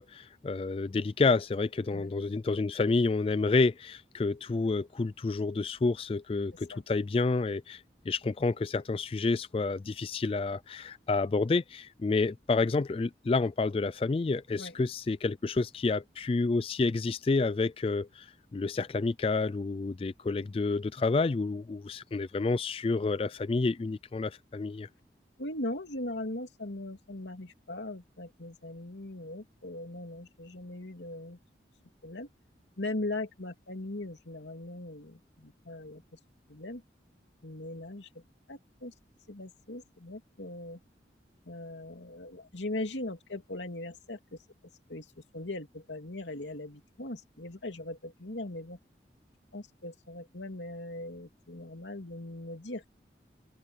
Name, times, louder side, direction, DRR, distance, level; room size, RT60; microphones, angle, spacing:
voice 1, 0.0-24.9, left 3 dB, 30° left, 0.3 m, -29 dB
voice 2, 25.4-31.4 32.0-32.3 32.8-36.2 36.5-36.8 37.4-38.1 38.5-38.9 39.3-40.8 41.4-44.4 44.9-48.8 49.5-52.9, left 2 dB, 90° left, 2.7 m, -39 dB
head